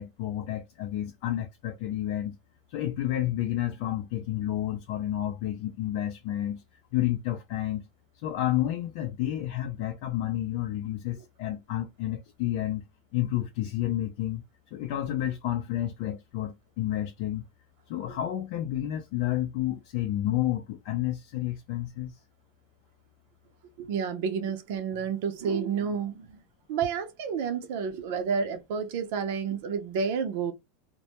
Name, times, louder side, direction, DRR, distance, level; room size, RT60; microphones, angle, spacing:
voice 1, 0.0-2.4 2.7-6.6 6.9-7.8 8.2-12.8 13.1-14.4 14.7-17.4 17.9-22.2, left 13 dB, 60° left, 0.5 m, -30 dB
voice 2, 23.8-26.4 26.7-30.5, right 6 dB, 65° right, 0.6 m, -30 dB
2.2 x 2.1 x 2.8 m
supercardioid pair, 150°, 0 cm